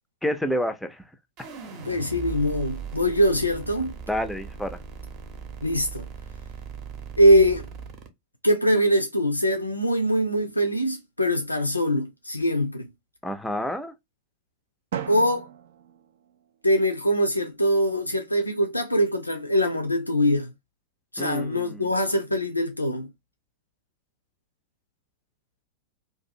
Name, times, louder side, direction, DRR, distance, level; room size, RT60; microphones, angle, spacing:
voice 1, 0.2-1.0 4.1-4.8 13.2-13.9 21.2-21.9, equal, 5° left, 0.5 m, -29 dB
sound 1, 1.4-8.1, right 6 dB, 40° right, 0.8 m, -39 dB
voice 2, 1.8-3.9 5.6-6.1 7.2-7.7 8.4-12.9 15.1-15.5 16.6-20.5 21.1-23.1, equal, 85° left, 0.4 m, -22 dB
Drum, 14.9-16.9, right 10 dB, 60° right, 0.3 m, -37 dB
2.6 x 2.4 x 2.6 m
figure-of-eight pair, 90°, 0 cm